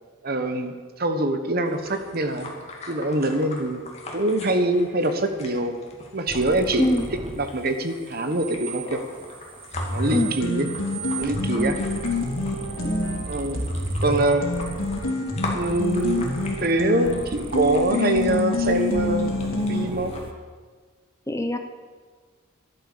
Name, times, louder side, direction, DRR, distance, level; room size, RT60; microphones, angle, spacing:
voice 1, 0.2-2.5 2.9-3.8 4.1-5.7 6.1-7.0 7.4-9.0 9.9-10.7 11.2-11.8 13.3-13.7 14.0-14.7 15.5-16.2 16.6-19.3 19.7-20.1, right 1 dB, 50° right, 7 dB, 1.2 m, -24 dB
sound 1, 1.7-20.2, left 2 dB, 30° left, 2.4 m, -41 dB
sound 2, 6.3-7.5 7.8-15.1 15.4-16.7 17.0-20.3, right 3 dB, 25° right, 0.9 m, -37 dB
sound 3, 9.7-19.9, left 2 dB, 85° left, 2.8 m, -28 dB
voice 2, 11.5-11.9 12.8-13.2 21.3-21.6, equal, 15° left, 6 dB, 0.7 m, -24 dB
13.5 x 11.5 x 6.8 m, 1.5 s
head